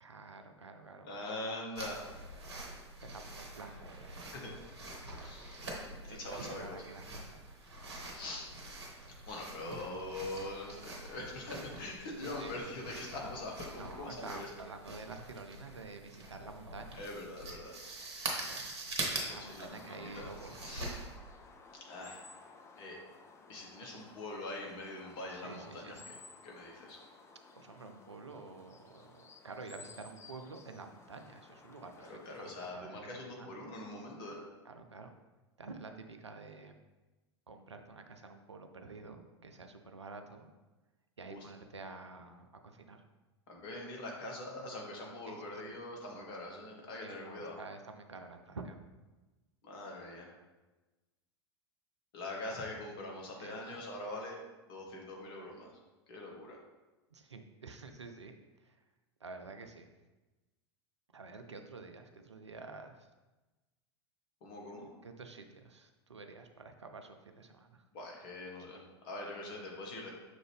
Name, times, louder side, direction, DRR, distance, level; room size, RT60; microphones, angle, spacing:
voice 1, 0.0-1.3 3.1-4.4 5.9-7.5 9.7-9.8 12.2-12.5 13.8-17.0 18.3-18.7 19.3-20.6 25.3-26.1 27.6-32.1 32.4-33.6 34.6-35.1 35.6-36.8 37.5-40.5 41.2-43.0 45.3-45.8 47.0-48.8 52.5-52.6 53.4-53.8 57.1-58.3 58.6-58.8 59.2-59.9 61.1-63.1 65.0-67.8, right 3 dB, 85° right, 6 dB, 0.4 m, -49 dB
voice 2, 1.0-2.0 4.3-4.5 5.1-5.6 6.1-6.8 8.1-8.5 9.3-14.5 16.9-17.7 19.3-20.3 20.7-20.9 21.9-22.2 22.8-23.0 23.5-26.0 26.4-27.0 32.0-34.5 41.3-41.5 43.5-47.6 49.6-50.3 52.1-54.4 54.7-55.7 56.1-56.6 64.4-64.9 67.9-70.1, left 2 dB, 50° left, -1 dB, 1.1 m, -43 dB
sound 1, 1.8-21.1, right 2 dB, 65° right, 1.0 m, -44 dB
sound 2, 19.3-32.7, left 4 dB, 20° left, 0.4 m, -56 dB
5.9 x 2.5 x 3.3 m, 1.1 s
figure-of-eight pair, 85°, 15 cm